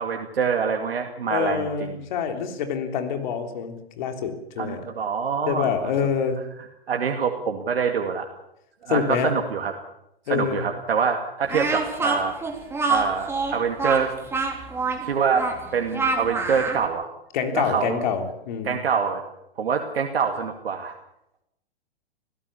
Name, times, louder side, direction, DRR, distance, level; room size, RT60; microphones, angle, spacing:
voice 1, 0.0-2.0 4.6-5.9 6.9-8.3 8.8-9.7 10.3-12.4 12.9-14.1 15.0-15.5 15.7-17.1 17.5-18.1 18.6-19.2 19.6-20.9, right 6 dB, 70° right, 3 dB, 2.4 m, -25 dB
voice 2, 1.3-4.8 5.5-6.4 8.9-9.3 10.3-10.6 17.3-18.8, left 7 dB, 45° left, 6 dB, 3.5 m, -26 dB
Speech, 11.5-16.8, right 3 dB, 10° right, 3.1 m, -26 dB
25.5 x 16.5 x 7.1 m, 0.82 s
hypercardioid pair, 125°, 31 cm